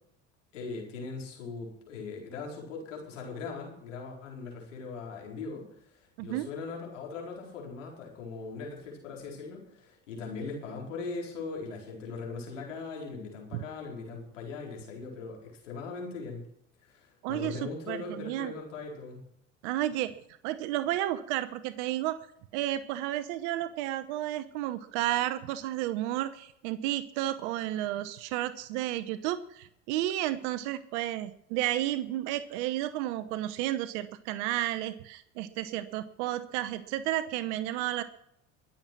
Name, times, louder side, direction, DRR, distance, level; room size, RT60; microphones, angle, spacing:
voice 1, 0.5-16.4 16.8-19.3, left 4 dB, 85° left, 0 dB, 4.4 m, -40 dB
voice 2, 6.2-6.5 13.5-13.6 17.2-18.5 19.6-20.1 20.4-22.2 22.5-38.0, right 14 dB, 70° right, 14 dB, 0.9 m, -32 dB
22.0 x 7.5 x 6.0 m, 0.75 s
hypercardioid pair, 75°, 36 cm